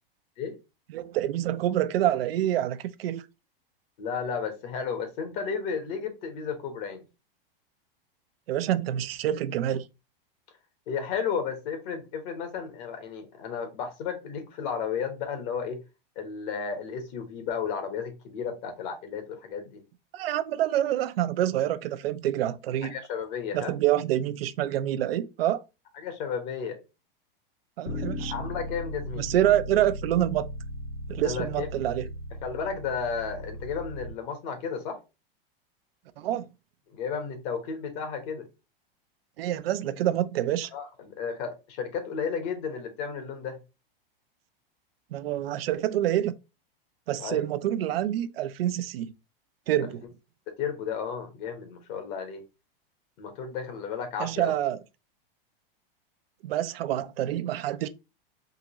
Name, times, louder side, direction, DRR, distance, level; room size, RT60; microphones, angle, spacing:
voice 1, 0.9-3.2 8.5-9.9 20.1-23.0 23.5-25.6 27.8-28.3 29.2-30.5 31.1-32.0 36.2-36.4 39.4-40.7 45.1-46.3 47.1-49.1 49.7-50.0 54.2-54.8 56.4-57.9, right 12 dB, 80° right, 0.6 m, -27 dB
voice 2, 4.0-7.0 10.9-15.8 16.1-19.8 22.9-23.8 26.0-26.8 28.3-29.2 31.2-31.7 32.4-35.0 36.9-38.5 40.7-43.6 47.2-47.4 50.5-52.4 53.2-54.5, left 6 dB, 50° left, 1.3 m, -33 dB
Bass guitar, 27.9-34.1, left 1 dB, 80° left, 1.7 m, -37 dB
3.7 x 2.9 x 2.9 m
supercardioid pair, 135°, 29 cm